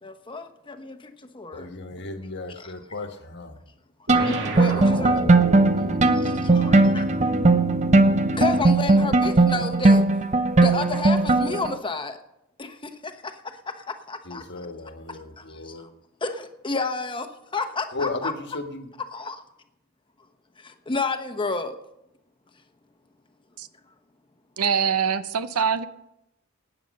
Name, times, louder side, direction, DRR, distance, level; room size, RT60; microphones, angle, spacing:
voice 1, 0.0-1.7 2.6-2.7 4.3-5.2 6.1-7.1 8.3-10.0 10.6-12.2 12.6-14.4 15.4-15.7 16.2-17.3 17.5-18.3 19.1-19.4 20.6-21.7, left 3 dB, 20° left, 7 dB, 1.0 m, -31 dB
voice 2, 1.5-3.6 14.2-15.9 17.9-18.9, left 3 dB, 50° left, 6 dB, 1.4 m, -35 dB
sound 1, 4.1-11.7, right 2 dB, 30° right, 0.7 m, -19 dB
sound 2, 4.1-8.8, right 1 dB, 55° right, 2.0 m, -29 dB
voice 3, 24.6-25.9, right 7 dB, 80° right, 13 dB, 0.7 m, -23 dB
18.0 x 9.0 x 5.4 m, 0.86 s
head